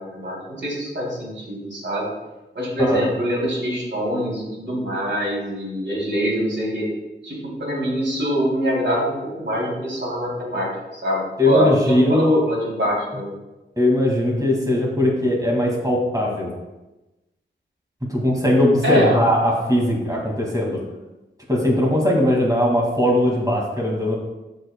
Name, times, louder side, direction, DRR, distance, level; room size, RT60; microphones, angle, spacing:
voice 1, 0.0-2.1 2.5-6.9 7.2-13.3 18.8-19.2, equal, 70° right, -4 dB, 2.8 m, -24 dB
voice 2, 11.4-12.4 13.8-16.5 18.1-20.8 21.5-24.1, left 1 dB, 15° right, -2 dB, 2.0 m, -19 dB
15.0 x 5.4 x 2.2 m, 1.0 s
wide cardioid pair, 90°, 20 cm